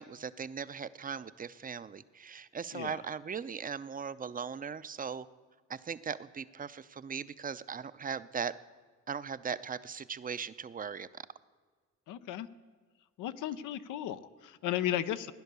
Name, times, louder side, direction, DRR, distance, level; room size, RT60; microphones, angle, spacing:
voice 1, 0.0-5.3 5.7-8.5 9.1-11.1, right 6 dB, 30° right, 15 dB, 0.6 m, -39 dB
voice 2, 12.1-12.5 13.2-15.3, left 11 dB, 85° left, 12 dB, 0.7 m, -35 dB
16.5 x 10.5 x 6.8 m, 1.5 s
cardioid pair, 90°, 30 cm